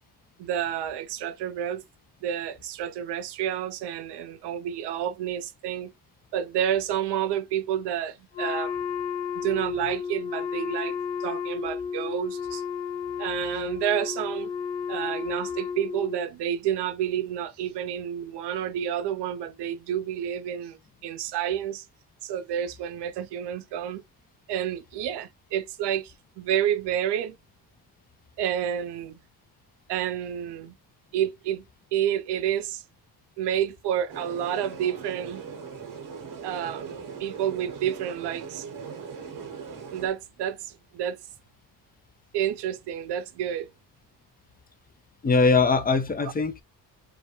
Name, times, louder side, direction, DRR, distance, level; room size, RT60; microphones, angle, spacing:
voice 1, 0.4-1.8 2.2-5.9 6.3-8.8 9.4-12.6 13.2-14.5 14.9-21.8 22.2-24.0 24.5-27.3 28.4-29.2 29.9-30.8 31.1-31.7 31.9-32.8 33.4-35.4 36.4-36.9 37.2-38.7 39.9-41.2 42.3-43.7, right 10 dB, 65° right, 0.5 m, -29 dB
Wind instrument woodwind instrument, 8.3-16.3, left 7 dB, 75° left, 0.7 m, -32 dB
sound 1, 34.1-40.1, right 6 dB, 45° right, 0.8 m, -40 dB
voice 2, 45.2-46.6, left 4 dB, 20° left, 0.4 m, -21 dB
2.3 x 2.1 x 2.8 m
supercardioid pair, 65°, 45 cm